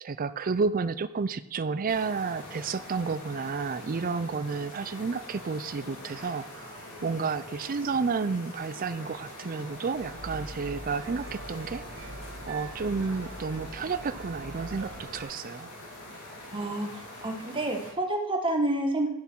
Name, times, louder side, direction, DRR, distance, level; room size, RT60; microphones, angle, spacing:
voice 1, 0.0-11.8 12.5-15.7, right 4 dB, 40° right, 14 dB, 0.4 m, -31 dB
sound 1, 1.9-17.9, left 1 dB, 85° left, 3.2 m, -44 dB
sound 2, 9.9-15.2, right 2 dB, 60° right, 1.1 m, -43 dB
voice 2, 16.5-19.1, right 1 dB, 25° right, 2 dB, 1.6 m, -29 dB
12.5 x 7.0 x 4.6 m, 0.80 s
head